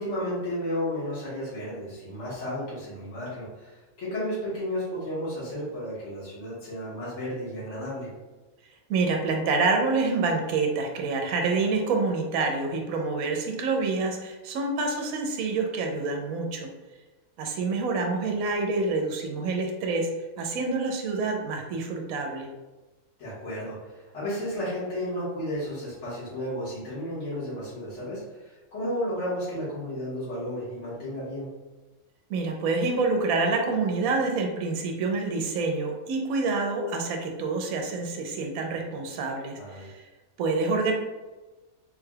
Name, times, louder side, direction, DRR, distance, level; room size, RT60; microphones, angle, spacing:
voice 1, 0.0-8.1 23.2-31.5 39.6-39.9, equal, 60° left, -10 dB, 1.6 m, -33 dB
voice 2, 8.9-16.7 17.4-20.1 20.4-22.5 32.3-40.0 40.4-40.9, right 3 dB, 80° right, 2 dB, 1.0 m, -27 dB
3.6 x 3.3 x 2.2 m, 1.2 s
omnidirectional pair, 1.5 m